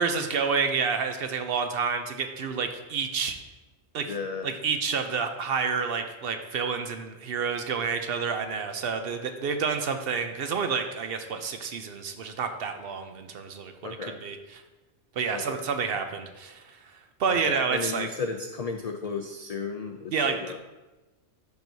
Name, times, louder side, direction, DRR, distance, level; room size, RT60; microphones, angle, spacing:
voice 1, 0.0-3.4 3.9-4.1 4.4-14.4 15.2-16.6 17.2-18.1 20.1-20.4, right 5 dB, 60° right, 7 dB, 0.7 m, -29 dB
voice 2, 4.1-4.5 13.8-14.2 15.3-15.6 17.3-20.6, left 4 dB, 70° left, 5 dB, 0.3 m, -34 dB
11.5 x 4.6 x 2.7 m, 1.1 s
omnidirectional pair, 1.2 m